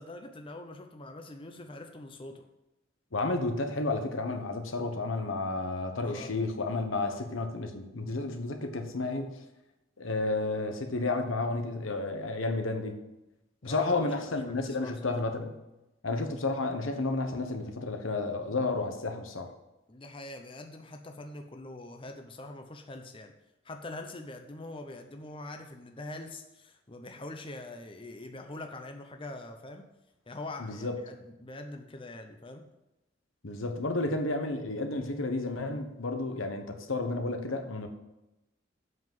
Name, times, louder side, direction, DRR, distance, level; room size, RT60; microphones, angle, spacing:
voice 1, 0.0-2.4 6.0-6.3 7.0-7.2 13.6-15.2 19.9-23.3 23.6-29.9 30.3-32.6, left 2 dB, 25° left, 5 dB, 0.7 m, -44 dB
voice 2, 3.1-9.4 10.0-13.0 13.6-15.5 16.0-19.5 30.6-30.9 33.4-37.9, left 2 dB, 85° left, 6 dB, 1.2 m, -31 dB
7.8 x 5.8 x 7.6 m, 0.95 s
head